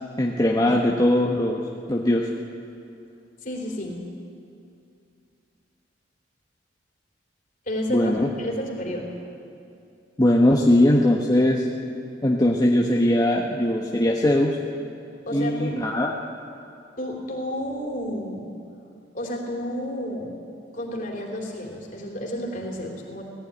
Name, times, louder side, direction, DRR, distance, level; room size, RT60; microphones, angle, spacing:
voice 1, 0.2-1.6 1.9-2.3 7.9-8.3 10.2-11.6 12.2-14.6 15.3-16.1, left 1 dB, 20° left, -2 dB, 1.1 m, -20 dB
voice 2, 3.4-4.0 7.7-8.1 8.4-9.1 15.3-15.8 17.0-18.5 19.1-20.4 20.7-23.2, left 1 dB, 45° left, 0 dB, 3.5 m, -31 dB
18.5 x 15.0 x 9.8 m, 2.6 s
head